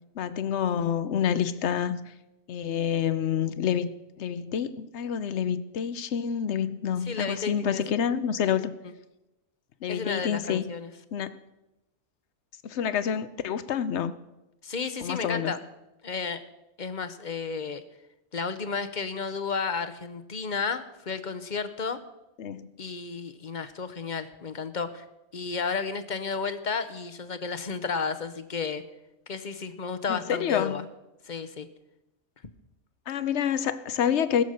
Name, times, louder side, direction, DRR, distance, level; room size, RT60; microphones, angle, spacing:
voice 1, 0.2-2.0 2.5-3.9 4.2-8.7 9.8-10.6 11.1-11.3 12.6-14.1 15.0-15.5 22.4-22.7 30.1-30.9 33.1-34.4, left 8 dB, 70° left, 13 dB, 1.0 m, -28 dB
voice 2, 7.0-7.8 9.9-10.9 14.6-15.6 16.0-16.4 16.8-17.8 18.3-22.0 22.8-25.0 25.3-28.8 29.3-30.8 31.2-31.7, left 5 dB, 45° left, 11 dB, 0.9 m, -32 dB
20.5 x 7.1 x 6.4 m, 0.96 s
omnidirectional pair, 1.2 m